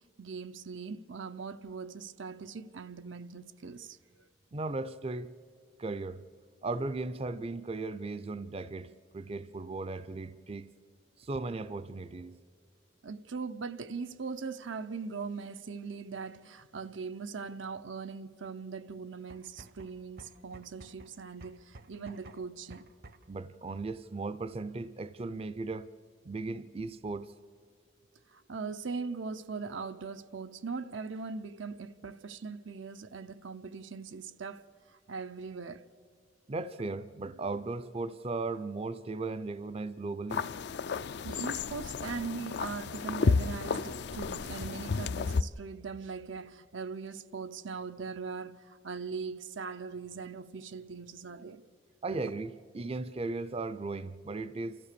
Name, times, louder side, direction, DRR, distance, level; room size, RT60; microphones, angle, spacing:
voice 1, 0.2-4.0 13.0-22.8 28.3-34.6 35.1-35.9 41.2-48.5 48.8-51.6, right 5 dB, 85° right, 0.7 m, -40 dB
voice 2, 4.5-5.3 5.8-6.2 6.6-10.7 11.2-12.4 23.3-25.9 26.2-27.3 36.5-40.5 52.0-54.8, right 3 dB, 30° right, 0.5 m, -37 dB
sound 1, 19.2-23.4, right 2 dB, 55° right, 0.8 m, -53 dB
sound 2, 40.3-45.4, left 4 dB, 60° left, 0.4 m, -32 dB
29.0 x 14.0 x 6.8 m
head